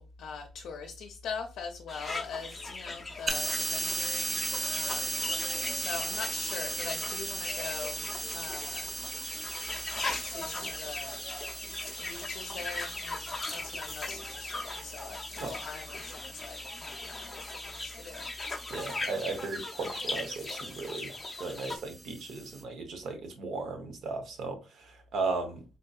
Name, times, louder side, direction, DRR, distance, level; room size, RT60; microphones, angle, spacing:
voice 1, 0.0-4.5 4.7-8.0 8.3-8.9 10.3-11.2 12.0-18.3, left 5 dB, 75° left, 0.5 m, -42 dB
sound 1, 1.9-21.8, left 2 dB, 20° left, 0.6 m, -39 dB
sound 2, 3.3-22.6, right 2 dB, 25° right, 0.4 m, -38 dB
voice 2, 15.4-15.7 18.7-21.1 21.4-25.6, right 3 dB, 70° right, 0.8 m, -36 dB
3.7 x 2.7 x 2.3 m
cardioid pair, 90°, 0 cm